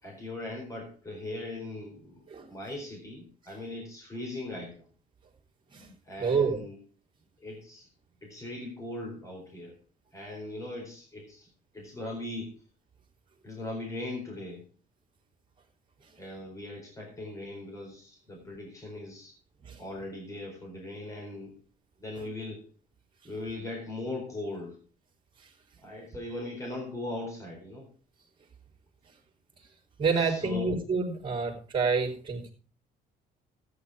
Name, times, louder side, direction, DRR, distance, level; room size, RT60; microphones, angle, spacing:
voice 1, 0.0-4.7 6.1-6.8 7.4-7.9 8.2-9.7 10.1-11.5 11.7-12.5 13.4-14.6 16.2-19.3 19.8-21.5 22.0-22.6 23.2-24.7 25.8-27.9 30.2-30.7, left 2 dB, 20° left, 0 dB, 4.4 m, -39 dB
voice 2, 6.2-6.6 19.6-19.8 22.2-22.3 30.0-32.5, right 4 dB, 30° right, -4 dB, 3.7 m, -28 dB
13.5 x 9.6 x 4.9 m, 0.39 s
cardioid pair, 110°, 17 cm